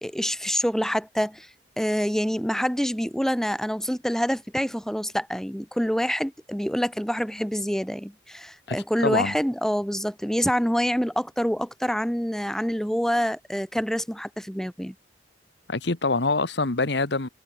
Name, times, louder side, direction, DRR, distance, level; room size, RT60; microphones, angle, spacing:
voice 1, 0.0-1.5 1.8-14.9, equal, 5° left, 3.7 m, -26 dB
voice 2, 8.7-9.3 15.7-17.3, left 3 dB, 70° left, 1.6 m, -25 dB
head